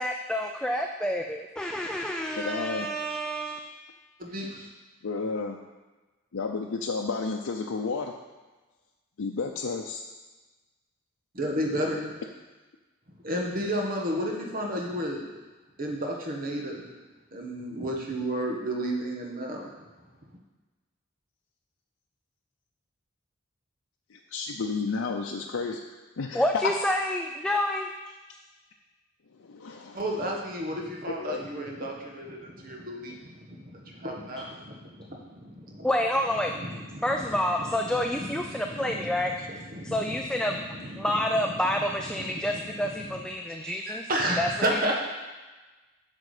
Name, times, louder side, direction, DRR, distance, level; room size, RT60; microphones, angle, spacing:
voice 1, 0.0-3.7 26.3-27.9 35.8-36.5 37.0-39.3 39.8-40.6 41.0-44.1 44.4-44.5, left 1 dB, 5° left, 2 dB, 0.3 m, -28 dB
voice 2, 2.4-2.9 5.0-5.6 6.3-8.1 9.2-10.0 24.1-25.8 26.2-26.7 29.4-30.0 31.2-31.4, left 4 dB, 90° left, 1 dB, 0.6 m, -31 dB
voice 3, 4.2-4.7 11.3-12.1 13.2-15.3 15.8-16.9 17.3-19.7 29.9-35.9 36.5-44.9, equal, 45° right, 0 dB, 1.4 m, -33 dB
8.3 x 6.2 x 4.9 m, 1.2 s
head